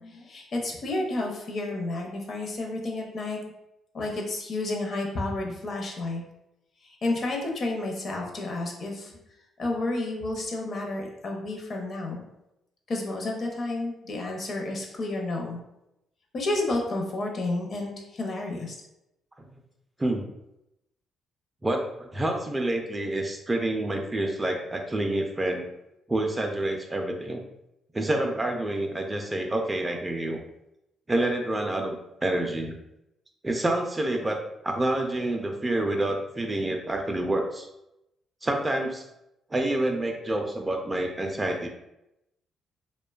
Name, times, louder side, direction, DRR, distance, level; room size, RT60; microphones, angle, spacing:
voice 1, 0.0-3.4 3.9-6.2 6.8-9.1 9.6-12.2 12.9-15.6 16.3-18.7, left 2 dB, 50° left, 0 dB, 0.6 m, -31 dB
voice 2, 21.6-25.7 26.1-27.4 27.9-30.4 31.1-32.8 33.4-37.7 38.4-39.0 39.5-41.7, right 1 dB, 20° right, 3 dB, 0.3 m, -28 dB
2.6 x 2.1 x 2.3 m, 0.87 s
cardioid pair, 90°, 0 cm